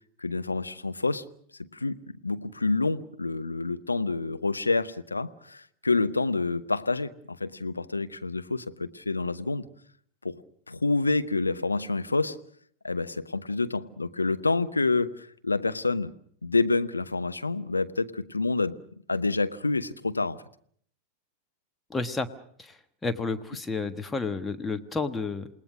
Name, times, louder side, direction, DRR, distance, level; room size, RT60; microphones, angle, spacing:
voice 1, 0.2-1.2 1.7-9.7 10.2-10.4 10.7-12.4 12.8-16.1 16.4-18.8 19.1-20.4, left 3 dB, 80° left, 11 dB, 1.0 m, -28 dB
voice 2, 21.9-22.3 22.6-25.5, left 3 dB, 10° left, 8 dB, 1.3 m, -31 dB
28.5 x 19.5 x 6.3 m, 0.62 s
figure-of-eight pair, 90°, 0 cm